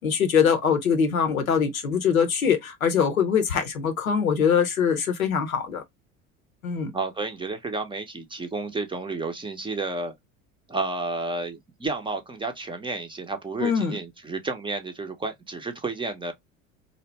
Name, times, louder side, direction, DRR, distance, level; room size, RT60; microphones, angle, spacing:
voice 1, 0.0-5.8 6.6-6.9 13.6-14.0, left 7 dB, 90° left, 0.6 m, -23 dB
voice 2, 6.9-10.1 10.7-16.3, right 3 dB, 15° right, 0.5 m, -31 dB
2.6 x 2.0 x 3.1 m
figure-of-eight pair, 65°, 40 cm